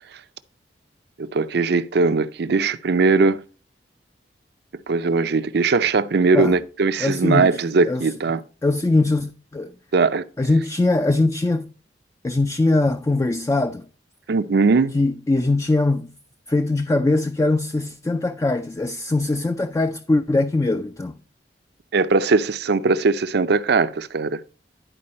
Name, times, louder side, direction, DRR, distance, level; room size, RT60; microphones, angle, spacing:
voice 1, 1.2-3.4 4.9-8.4 9.9-10.2 14.3-15.0 21.9-24.4, right 4 dB, 65° right, 0.5 m, -20 dB
voice 2, 7.0-7.6 7.9-8.0 8.6-9.7 10.4-11.7 12.2-13.8 14.9-16.1 16.5-21.1, left 2 dB, 20° left, 0.3 m, -21 dB
11.0 x 4.6 x 4.2 m
head